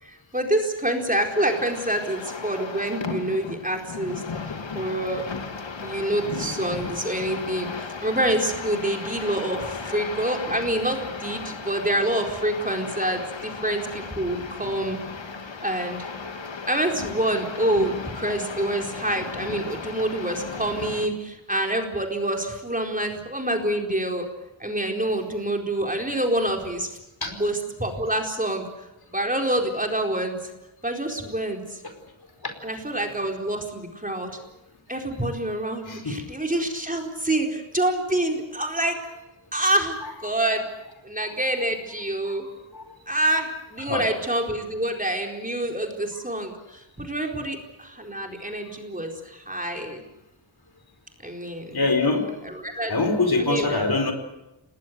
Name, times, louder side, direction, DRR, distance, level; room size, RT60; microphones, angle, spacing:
voice 1, 0.0-4.2 4.7-5.3 5.8-15.0 15.6-16.0 16.7-24.3 24.6-27.0 27.3-28.7 29.1-30.4 30.8-31.8 32.6-34.3 34.9-39.0 39.5-40.7 41.0-42.5 43.1-50.0 51.2-51.8 52.4-52.9 53.4-53.8, right 1 dB, 15° right, 2 dB, 4.4 m, -27 dB
sound 1, 1.2-21.1, left 4 dB, 65° left, 2.4 m, -35 dB
voice 2, 35.9-36.2 42.7-42.8 43.9-44.0 51.7-52.2 52.9-54.1, left 3 dB, 50° left, 6 dB, 4.8 m, -23 dB
28.0 x 20.0 x 8.1 m, 0.94 s
wide cardioid pair, 75°, 48 cm